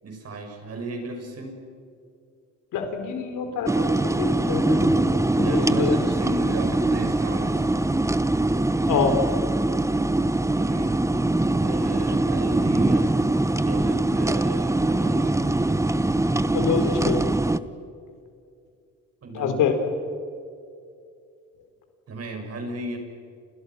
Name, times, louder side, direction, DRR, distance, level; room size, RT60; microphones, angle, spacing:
voice 1, 0.0-1.6 5.4-7.7 10.6-11.0 11.6-13.1 13.5-15.6 19.2-19.7 22.1-23.0, right 2 dB, 55° right, 3 dB, 7.2 m, -35 dB
voice 2, 2.7-6.0 8.9-9.2 16.5-17.3 19.3-19.7, left 7 dB, 85° left, 6 dB, 4.3 m, -26 dB
sound 1, 3.7-17.6, right 2 dB, 10° right, 1.0 m, -22 dB
29.5 x 29.0 x 6.3 m, 2.4 s
cardioid pair, 90°, 30 cm